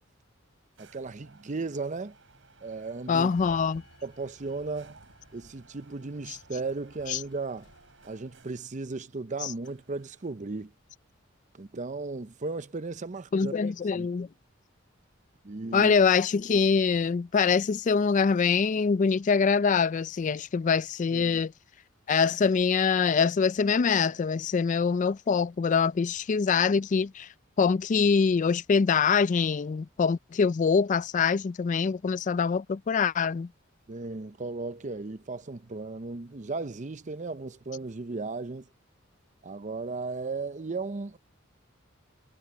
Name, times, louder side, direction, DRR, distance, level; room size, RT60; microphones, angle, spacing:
voice 1, 0.8-2.1 2.6-3.6 4.0-5.0 5.3-7.7 8.0-10.7 11.5-13.5 13.9-14.1 15.4-15.9 21.1-21.4 33.9-38.7 39.4-41.2, right 3 dB, 40° right, 0.7 m, -36 dB
sound 1, 0.8-8.8 9.6-10.6, right 3 dB, 65° right, 5.1 m, -58 dB
voice 2, 3.1-3.8 7.1-7.2 9.4-9.5 13.3-14.3 15.7-21.5 22.1-27.3 27.6-33.5, left 5 dB, 40° left, 0.3 m, -24 dB
Sliding door, 3.2-8.4, left 1 dB, 60° left, 2.5 m, -57 dB
head